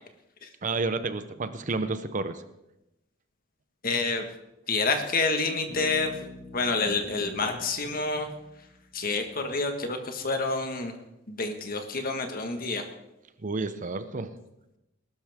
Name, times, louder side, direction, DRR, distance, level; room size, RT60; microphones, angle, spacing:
voice 1, 0.6-2.4 13.4-14.4, right 3 dB, 40° right, 11 dB, 0.7 m, -30 dB
voice 2, 3.8-4.2 4.7-6.1 6.5-8.3 8.9-10.9 11.3-12.8, left 3 dB, 45° left, 5 dB, 1.6 m, -28 dB
Bass guitar, 5.7-9.4, left 2 dB, 75° left, 6.8 m, -47 dB
20.0 x 12.5 x 3.6 m, 0.91 s
head